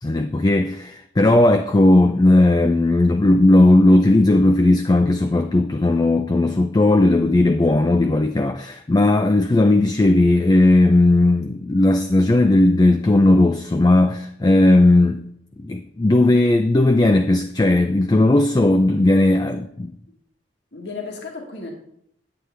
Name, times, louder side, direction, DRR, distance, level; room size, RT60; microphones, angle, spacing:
voice 1, 0.0-15.2 15.6-19.6, left 2 dB, 20° left, 0.4 m, -16 dB
voice 2, 19.2-19.5 20.1-20.2 20.7-21.7, left 4 dB, 65° left, 1.8 m, -35 dB
9.6 x 9.0 x 3.4 m
head